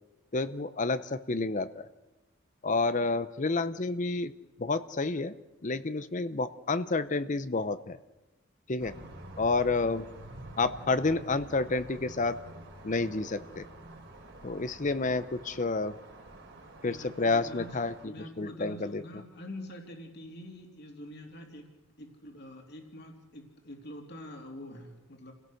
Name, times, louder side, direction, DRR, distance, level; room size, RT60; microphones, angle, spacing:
voice 1, 0.3-1.9 2.6-4.3 4.6-5.3 5.6-8.0 8.7-8.9 9.4-10.0 10.6-12.4 12.8-13.7 14.4-15.9 16.8-17.9 18.4-19.0, left 3 dB, 40° left, 13 dB, 0.7 m, -29 dB
sound 1, 8.8-18.1, right 1 dB, 60° right, 3.6 m, -48 dB
voice 2, 16.8-21.7 22.0-25.3, left 1 dB, 55° left, 3 dB, 3.2 m, -45 dB
29.0 x 17.0 x 6.4 m, 1.1 s
head